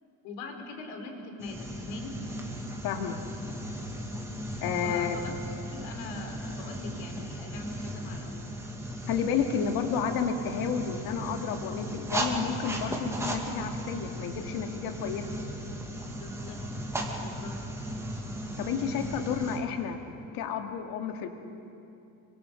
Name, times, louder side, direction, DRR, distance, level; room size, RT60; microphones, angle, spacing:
voice 1, 0.2-2.2 4.8-5.4 5.7-8.5 16.1-16.8 17.2-17.5, left 3 dB, 80° left, 4 dB, 3.7 m, -42 dB
sound 1, 1.4-19.6, equal, 5° right, 2.0 m, -36 dB
voice 2, 2.8-3.2 4.6-5.2 9.1-15.2 18.6-20.0 20.3-21.3, left 7 dB, 65° left, 5 dB, 2.2 m, -31 dB
27.5 x 23.5 x 5.1 m, 2.6 s
cardioid pair, 155°, 38 cm